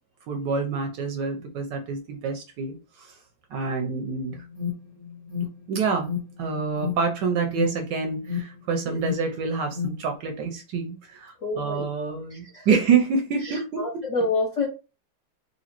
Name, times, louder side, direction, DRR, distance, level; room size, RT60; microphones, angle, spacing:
voice 1, 0.3-3.2 3.5-4.4 5.7-6.1 6.4-14.0, right 5 dB, 75° right, 1.1 m, -27 dB
Alarm, 4.3-10.2, left 7 dB, 15° left, 1.1 m, -34 dB
voice 2, 11.4-11.9 12.3-12.8 13.4-14.7, left 3 dB, 75° left, 0.7 m, -28 dB
4.0 x 2.6 x 2.9 m
omnidirectional pair, 2.3 m